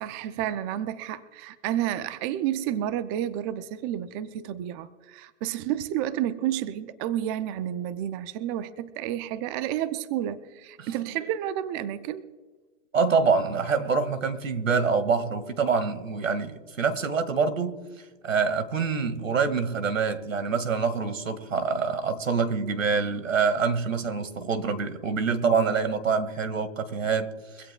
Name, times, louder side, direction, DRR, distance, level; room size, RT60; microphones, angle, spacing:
voice 1, 0.0-12.3, right 11 dB, 20° right, 0.4 m, -30 dB
voice 2, 12.9-27.7, right 5 dB, 85° right, 2.0 m, -26 dB
24.0 x 16.5 x 2.2 m
hypercardioid pair, 125°, 38 cm